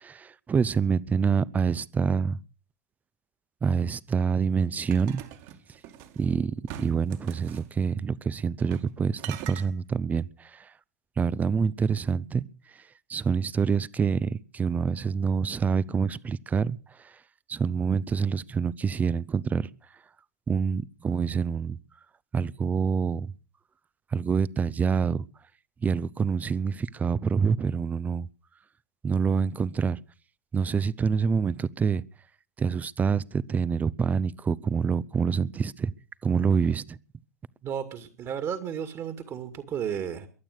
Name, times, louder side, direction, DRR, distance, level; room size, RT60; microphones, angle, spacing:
voice 1, 0.0-2.4 3.6-5.2 6.2-10.7 11.2-12.4 13.1-16.8 17.5-19.7 20.5-21.8 22.3-23.3 24.1-25.2 25.8-28.3 29.0-30.0 30.5-32.0 32.6-35.9 36.2-37.0, right 6 dB, 20° right, 0.7 m, -26 dB
sound 1, 4.9-6.2 6.7-7.7 8.6-8.9 9.2-9.7, right 11 dB, 50° right, 2.5 m, -42 dB
voice 2, 37.6-40.3, right 8 dB, 35° right, 2.2 m, -33 dB
22.5 x 8.8 x 6.6 m
hypercardioid pair, 95°, 8 cm